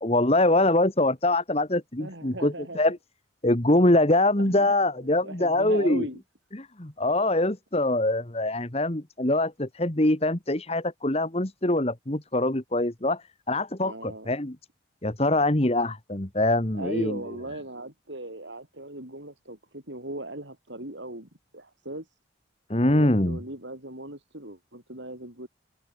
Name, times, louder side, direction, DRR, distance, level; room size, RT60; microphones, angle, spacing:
voice 1, 0.0-3.0 3.4-6.1 6.5-14.5 15.0-17.2 22.7-23.4, left 1 dB, 30° left, 1.7 m, -24 dB
voice 2, 2.0-2.8 4.4-4.8 5.2-6.2 13.8-14.3 16.7-22.1 22.8-25.5, right 1 dB, 70° right, 7.1 m, -38 dB
head